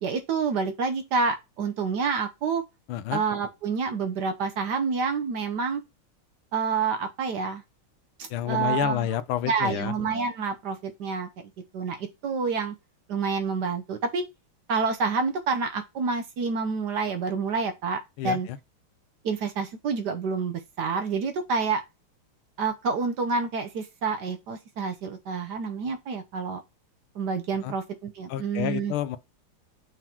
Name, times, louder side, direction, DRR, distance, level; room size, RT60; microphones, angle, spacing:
voice 1, 0.0-2.6 3.1-5.8 6.5-7.6 8.2-9.1 9.5-12.7 13.1-14.3 14.7-18.5 19.2-21.8 22.6-26.6 27.1-28.9, right 5 dB, 60° right, 1.2 m, -28 dB
voice 2, 2.9-3.2 8.3-9.9 18.2-18.6 27.6-27.7 28.3-29.2, left 12 dB, 85° left, 1.5 m, -29 dB
5.9 x 3.9 x 4.4 m
omnidirectional pair, 2.3 m